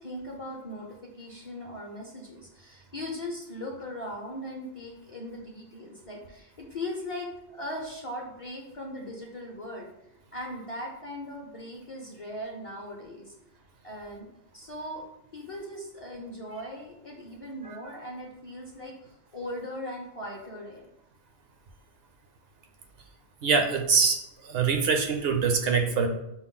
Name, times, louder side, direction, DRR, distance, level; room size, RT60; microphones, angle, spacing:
voice 1, 0.0-9.9 10.3-13.3 13.8-14.3 14.5-15.0 15.3-20.9, left 1 dB, 40° left, -1 dB, 0.6 m, -39 dB
voice 2, 23.4-26.1, right 5 dB, 65° right, 5 dB, 0.8 m, -24 dB
5.9 x 2.0 x 3.7 m, 0.84 s
omnidirectional pair, 1.1 m